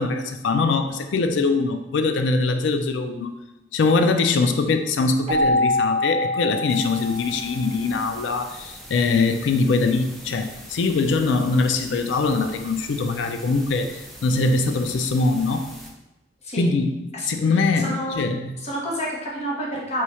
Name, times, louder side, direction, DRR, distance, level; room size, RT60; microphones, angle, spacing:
voice 1, 0.0-3.4 3.7-15.7 16.6-18.5, left 3 dB, 80° left, 7 dB, 0.4 m, -22 dB
Keyboard (musical), 5.3-7.9, left 2 dB, 35° right, 0.8 m, -24 dB
sound 1, 6.7-15.9, equal, ahead, 0.4 m, -43 dB
voice 2, 17.1-18.3 18.6-20.0, equal, 35° left, -4 dB, 0.9 m, -29 dB
3.1 x 2.3 x 4.2 m, 0.95 s
head